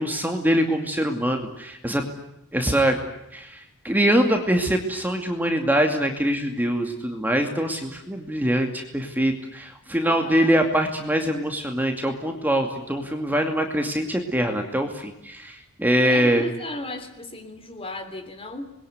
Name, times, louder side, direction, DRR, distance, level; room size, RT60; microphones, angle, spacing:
voice 1, 0.0-2.0 2.5-3.0 3.3-16.5, equal, 10° right, 3 dB, 2.4 m, -23 dB
voice 2, 10.0-10.6 16.0-18.7, left 2 dB, 25° left, 8 dB, 3.5 m, -36 dB
27.5 x 21.5 x 9.5 m, 0.86 s
head